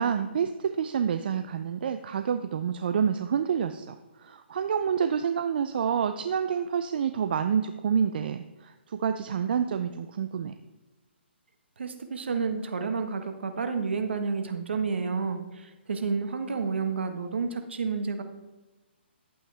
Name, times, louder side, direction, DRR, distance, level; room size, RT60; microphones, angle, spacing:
voice 1, 0.0-4.0 4.2-10.5, right 7 dB, 55° right, 9 dB, 0.6 m, -28 dB
voice 2, 11.8-18.2, right 5 dB, 70° right, 7 dB, 1.4 m, -30 dB
11.5 x 8.8 x 3.4 m, 1.1 s
hypercardioid pair, 140°, 6 cm